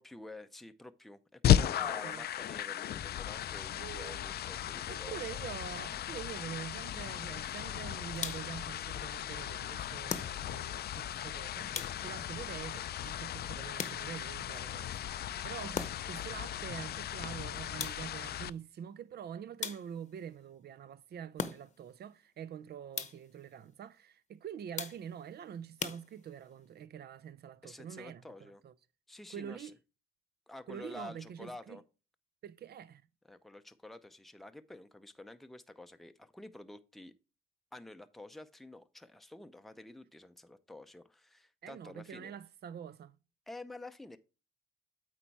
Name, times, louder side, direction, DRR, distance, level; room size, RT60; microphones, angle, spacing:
voice 1, 0.0-5.2 27.6-28.6 29.1-29.7 30.5-31.8 33.2-37.1 37.7-42.4 43.5-44.2, left 2 dB, ahead, 0.6 m, -49 dB
sound 1, 1.4-18.5, left 11 dB, 55° left, 0.4 m, -35 dB
voice 2, 1.8-2.2 3.7-4.3 4.9-28.7 29.3-29.7 30.7-31.8 32.4-33.0 41.6-43.2, right 9 dB, 55° right, 0.5 m, -46 dB
sound 2, 8.1-8.7 10.1-10.7 11.7-12.3 13.8-14.4 15.7-16.2 17.8-18.3 19.6-20.2 21.4-21.9 22.9-23.4 24.8-25.3 25.8-26.5, left 6 dB, 35° left, 0.9 m, -40 dB
8.3 x 4.5 x 4.6 m
cardioid pair, 90°, 20 cm